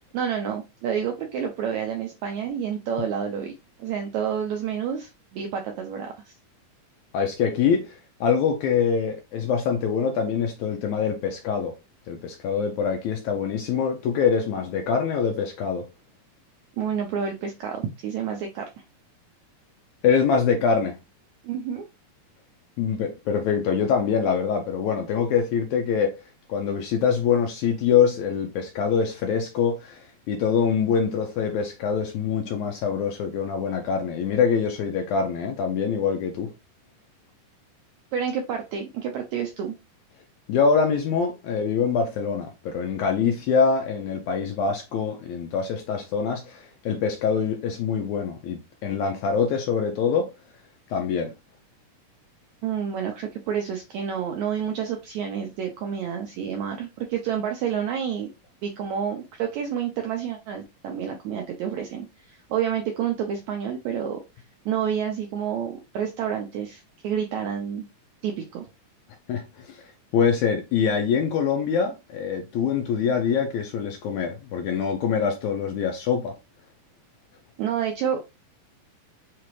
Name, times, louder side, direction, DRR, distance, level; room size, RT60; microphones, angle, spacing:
voice 1, 0.1-3.5 3.8-6.3 16.8-18.7 21.4-21.9 38.1-39.8 52.6-58.3 58.6-64.2 64.7-67.9 68.2-68.7 77.6-78.3, right 8 dB, 80° right, 1.6 m, -29 dB
voice 2, 7.1-11.7 12.1-15.9 20.0-21.0 22.8-26.1 26.5-36.5 40.5-50.3 50.9-51.3 69.3-69.8 70.1-76.3, left 6 dB, 80° left, 1.7 m, -24 dB
5.7 x 2.5 x 3.1 m
omnidirectional pair, 3.9 m